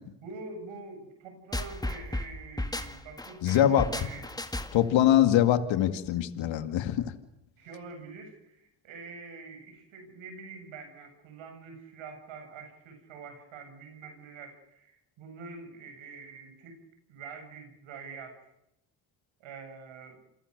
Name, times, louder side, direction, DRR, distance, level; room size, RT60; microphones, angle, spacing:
voice 1, 0.2-4.3 7.6-16.8 17.1-18.5 19.4-20.2, right 4 dB, 80° right, 6 dB, 7.9 m, -45 dB
sound 1, 1.5-5.0, left 1 dB, 10° left, 2.1 m, -34 dB
voice 2, 3.4-3.9 4.7-7.1, left 11 dB, 75° left, 9 dB, 2.4 m, -23 dB
28.5 x 22.5 x 6.8 m, 0.83 s
cardioid pair, 90°, 46 cm